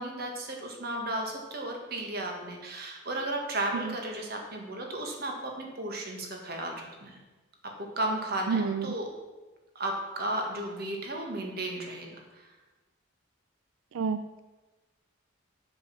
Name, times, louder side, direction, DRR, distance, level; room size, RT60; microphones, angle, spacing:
voice 1, 0.0-7.2 7.8-9.1 9.8-12.4, right 1 dB, 45° right, 2 dB, 1.7 m, -34 dB
voice 2, 8.5-8.8 14.0-14.4, right 5 dB, 80° right, 10 dB, 0.4 m, -29 dB
7.7 x 7.4 x 5.9 m, 1.2 s
head